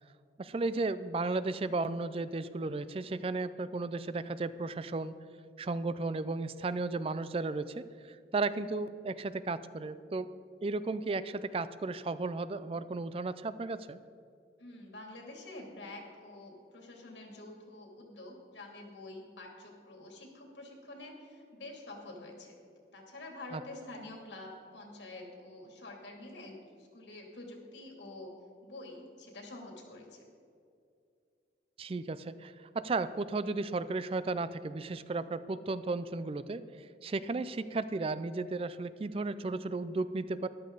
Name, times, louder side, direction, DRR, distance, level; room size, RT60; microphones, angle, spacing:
voice 1, 0.4-5.1 5.6-10.3 10.6-14.0 23.5-23.6 31.8-40.5, right 3 dB, 30° right, 14 dB, 0.4 m, -34 dB
voice 2, 14.6-22.5 22.9-28.3 28.6-30.2, left 2 dB, 85° left, 0 dB, 2.6 m, -47 dB
13.5 x 12.0 x 3.9 m, 2.4 s
head